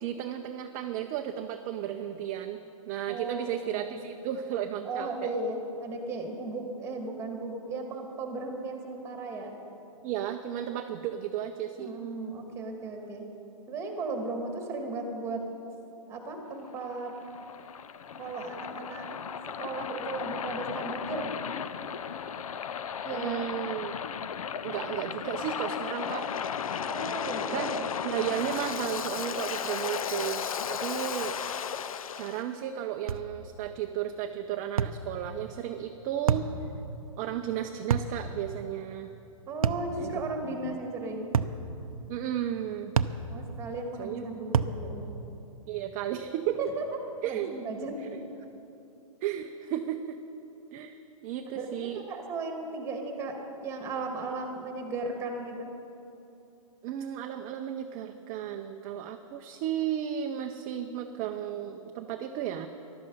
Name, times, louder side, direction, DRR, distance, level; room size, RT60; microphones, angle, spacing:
voice 1, 0.0-5.3 10.0-11.9 23.1-24.0 24.6-26.3 27.5-31.4 32.1-36.5 37.2-39.1 40.0-40.8 42.1-42.9 44.0-44.3 45.7-46.6 47.2-47.5 48.0-48.2 49.2-50.2 50.7-51.0 51.2-52.0 56.8-62.7, right 10 dB, 30° right, 5 dB, 0.6 m, -34 dB
voice 2, 3.1-4.0 4.9-9.5 11.8-13.2 13.7-15.4 16.1-17.1 18.2-19.1 19.6-21.3 23.0-23.5 26.8-27.8 39.5-41.3 43.3-45.1 46.6-46.9 47.2-48.2 51.6-53.3 53.6-55.7, right 3 dB, 15° right, 3 dB, 2.1 m, -36 dB
Waves surf, 16.6-32.4, left 7 dB, 75° left, 0.6 m, -35 dB
sound 1, 33.1-33.3 34.8-35.0 36.3-36.5 37.9-38.2 39.6-39.9 41.3-41.6 43.0-43.2 44.5-44.8, right 7 dB, 85° right, 0.6 m, -26 dB
14.0 x 12.0 x 5.4 m, 2.9 s
hypercardioid pair, 135°, 18 cm